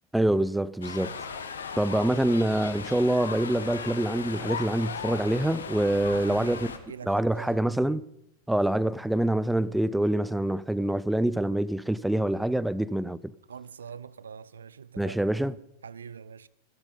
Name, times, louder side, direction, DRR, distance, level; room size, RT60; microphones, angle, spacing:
voice 1, 0.1-1.1 1.8-6.7 7.1-8.0 8.5-13.2 15.0-15.5, right 1 dB, 5° right, 0.4 m, -25 dB
sound 1, 0.8-6.8, left 6 dB, 70° left, 1.5 m, -37 dB
voice 2, 6.0-7.6 13.5-15.2 15.8-16.5, right 7 dB, 70° right, 0.5 m, -44 dB
16.5 x 12.5 x 5.2 m
figure-of-eight pair, 90°, 0 cm